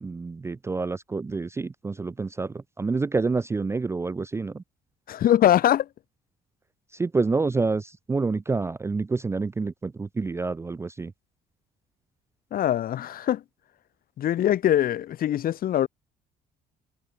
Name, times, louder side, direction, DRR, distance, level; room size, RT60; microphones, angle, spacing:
voice 1, 0.0-4.6 7.0-11.1, right 4 dB, 15° right, 0.4 m, -28 dB
voice 2, 5.1-5.9 12.5-13.4 14.2-15.9, left 11 dB, 60° left, 2.6 m, -22 dB
cardioid pair, 110°, 17 cm